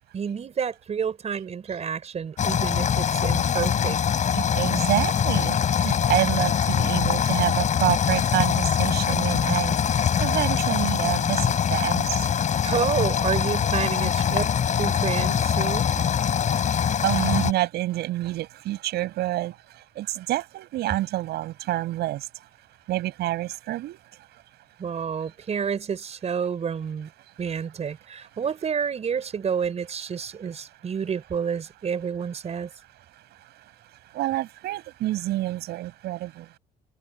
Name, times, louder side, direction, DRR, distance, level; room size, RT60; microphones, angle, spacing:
voice 1, 0.1-4.0 12.6-15.9 24.8-27.1 27.4-32.7, right 7 dB, 40° right, 5.0 m, -29 dB
sound 1, 2.4-17.5, left 8 dB, 45° left, 7.8 m, -23 dB
voice 2, 4.3-12.3 17.0-19.5 20.0-22.3 22.9-24.0 34.1-36.5, right 15 dB, 80° right, 8.0 m, -28 dB
cardioid pair, 110°, 17 cm